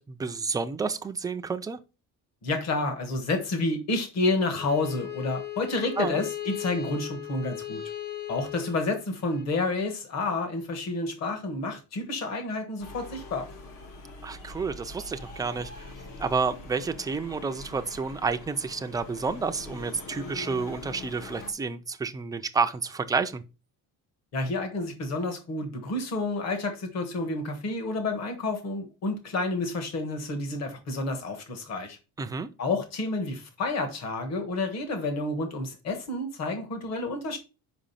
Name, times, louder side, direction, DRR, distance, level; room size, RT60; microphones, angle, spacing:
voice 1, 0.0-1.8 6.0-6.2 14.2-15.9 16.2-23.4 32.2-32.5, right 4 dB, 10° right, 0.3 m, -30 dB
voice 2, 2.4-7.8 8.3-13.5 24.3-32.0 32.6-37.4, left 2 dB, 50° left, 1.4 m, -30 dB
Bowed string instrument, 4.5-9.5, left 12 dB, 30° left, 0.8 m, -38 dB
sound 1, 12.8-21.5, left 2 dB, 70° left, 1.6 m, -43 dB
5.3 x 5.1 x 5.6 m
cardioid pair, 175°, 34 cm